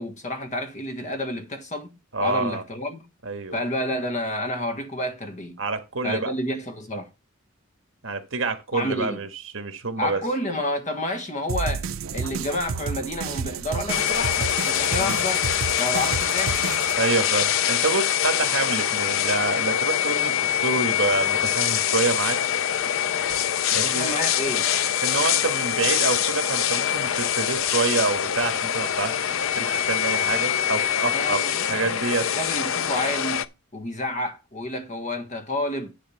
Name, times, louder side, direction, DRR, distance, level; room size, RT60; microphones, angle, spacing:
voice 1, 0.0-1.9 2.2-3.0 3.5-5.6 6.0-7.1 8.7-9.2 10.0-11.8 12.1-15.5 15.8-16.7 23.7-24.6 31.1-32.0 32.3-35.9, left 1 dB, 35° left, 1.5 m, -30 dB
voice 2, 2.1-2.6 3.2-3.6 5.6-6.3 8.0-10.2 15.0-15.2 17.0-22.4 23.7-24.1 25.0-29.2 29.5-32.3, right 3 dB, 70° right, 1.7 m, -27 dB
sound 1, 11.5-17.0, right 5 dB, 90° right, 0.6 m, -31 dB
sound 2, 13.9-33.4, left 9 dB, 75° left, 0.6 m, -24 dB
10.0 x 3.6 x 7.1 m
head